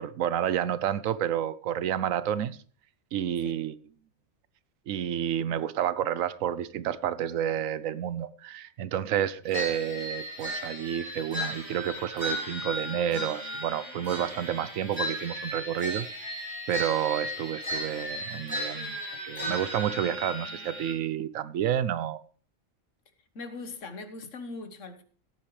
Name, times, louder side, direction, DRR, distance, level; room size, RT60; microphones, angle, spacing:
voice 1, 0.0-2.6 3.1-3.8 4.9-19.0 19.2-22.2, right 10 dB, 80° right, 1.0 m, -30 dB
sound 1, 9.5-20.9, equal, 20° right, 4.3 m, -35 dB
voice 2, 23.3-25.0, left 3 dB, 65° left, 1.5 m, -40 dB
16.5 x 8.8 x 3.2 m
omnidirectional pair, 1.4 m